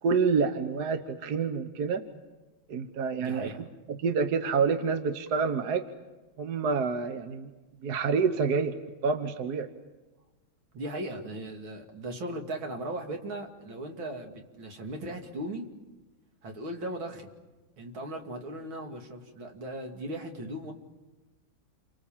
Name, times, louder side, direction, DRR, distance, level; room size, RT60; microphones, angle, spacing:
voice 1, 0.0-2.0 2.7-3.5 3.9-5.8 6.4-7.5 7.8-8.7 9.0-9.7, right 5 dB, 55° right, 8 dB, 1.6 m, -27 dB
voice 2, 3.2-3.7 10.7-15.7 16.4-17.3 17.8-20.7, right 1 dB, 70° right, 3 dB, 3.2 m, -37 dB
29.0 x 24.0 x 7.4 m, 1.2 s
omnidirectional pair, 2.3 m